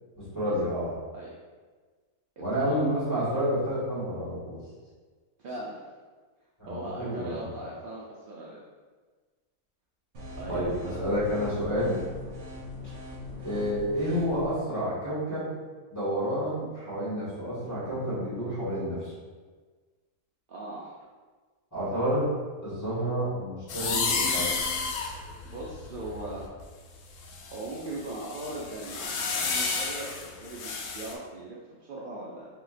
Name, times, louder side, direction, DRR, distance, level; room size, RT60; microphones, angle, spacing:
voice 1, 0.2-0.9 2.4-4.6 6.6-7.5 10.5-12.0 13.4-15.5 15.9-19.1 21.7-22.3 22.6-24.5, equal, 15° left, -10 dB, 1.5 m, -29 dB
voice 2, 2.4-2.9 5.4-5.8 6.7-8.6 10.4-11.0 20.5-21.0 25.4-26.5 27.4-32.5, right 1 dB, 80° right, -5 dB, 0.4 m, -39 dB
sound 1, 10.1-14.5, left 2 dB, 55° right, 1.2 m, -41 dB
sound 2, 23.7-26.6 27.2-31.1, left 4 dB, 70° left, 0.9 m, -31 dB
5.0 x 2.8 x 2.5 m, 1.4 s
omnidirectional pair, 1.5 m